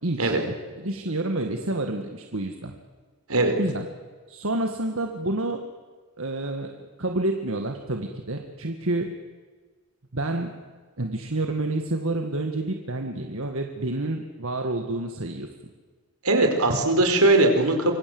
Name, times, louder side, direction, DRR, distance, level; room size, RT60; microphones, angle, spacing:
voice 1, 0.0-2.7 3.6-3.9 4.3-5.6 6.2-6.7 7.0-9.1 10.1-10.6 11.0-15.5, right 2 dB, 70° right, 5 dB, 1.9 m, -29 dB
voice 2, 16.2-18.0, right 2 dB, 85° right, 5 dB, 4.9 m, -20 dB
26.5 x 24.0 x 7.9 m, 1.5 s
head